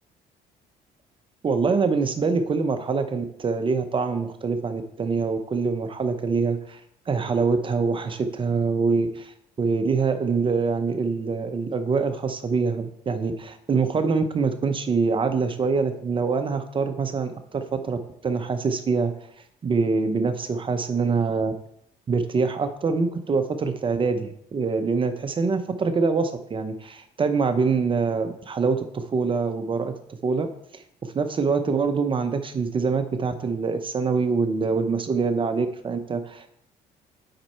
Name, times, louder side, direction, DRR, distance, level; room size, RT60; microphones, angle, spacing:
voice 1, 1.4-6.8 7.1-19.1 19.6-21.5 22.1-29.9 30.2-30.5 30.7-30.8 31.1-36.6, right 4 dB, 30° right, 8 dB, 0.7 m, -25 dB
7.7 x 5.4 x 4.4 m, 0.72 s
cardioid pair, 110°, 17 cm